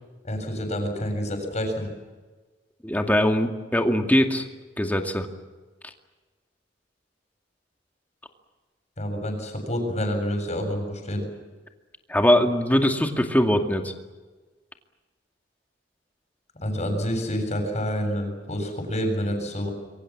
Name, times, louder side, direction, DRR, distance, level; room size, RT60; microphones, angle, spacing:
voice 1, 0.2-1.9 9.0-11.3 16.6-19.7, equal, 40° left, 4 dB, 7.4 m, -28 dB
voice 2, 2.8-4.5 4.8-5.3 12.1-13.9, equal, 10° left, 4 dB, 2.3 m, -21 dB
27.0 x 23.5 x 7.5 m, 1.3 s
head